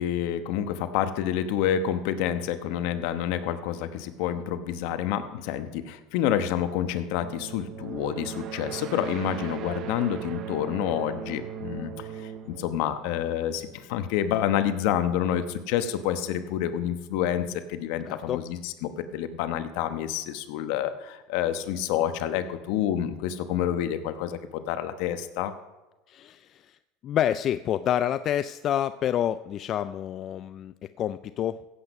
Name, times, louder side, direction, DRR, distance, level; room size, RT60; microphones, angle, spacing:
voice 1, 0.0-25.5, left 10 dB, 70° left, 9 dB, 1.0 m, -28 dB
sound 1, 7.2-13.9, right 9 dB, 50° right, 0.6 m, -38 dB
voice 2, 18.1-18.4 26.1-26.8 27.0-31.7, left 10 dB, 40° left, 13 dB, 0.3 m, -28 dB
15.5 x 8.1 x 5.4 m, 1.1 s
supercardioid pair, 125°, 0 cm